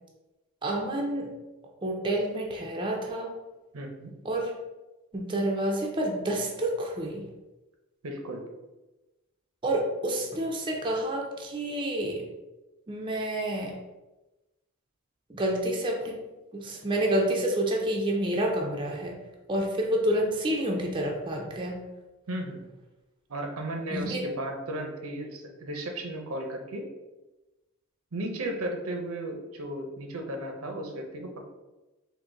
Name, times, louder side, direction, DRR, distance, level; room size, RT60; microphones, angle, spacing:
voice 1, 0.6-1.3 1.8-3.3 4.2-4.5 5.1-7.2 9.6-12.2 12.9-13.7 15.3-16.2 16.5-19.2 19.5-21.8 23.9-24.3, right 1 dB, 20° right, 0 dB, 0.5 m, -29 dB
voice 2, 3.7-4.1 8.0-8.4 22.3-22.7 23.3-26.8 28.1-31.4, right 1 dB, 80° right, 3 dB, 0.7 m, -35 dB
3.9 x 2.6 x 3.8 m, 1.1 s
head